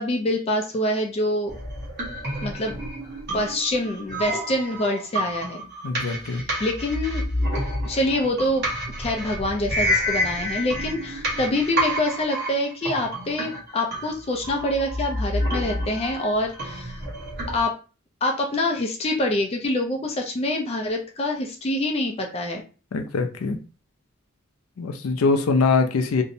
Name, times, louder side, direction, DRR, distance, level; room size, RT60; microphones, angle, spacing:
voice 1, 0.0-1.5 2.4-2.8 3.3-5.6 6.6-7.3 7.8-8.7 9.0-17.0 17.5-17.8 18.2-22.6, left 1 dB, 30° left, 0.4 m, -25 dB
sound 1, 1.5-17.6, equal, 55° right, 1.0 m, -29 dB
voice 2, 5.8-6.4 22.9-23.6 24.8-26.2, left 4 dB, 90° left, 0.4 m, -23 dB
2.6 x 2.0 x 2.6 m
head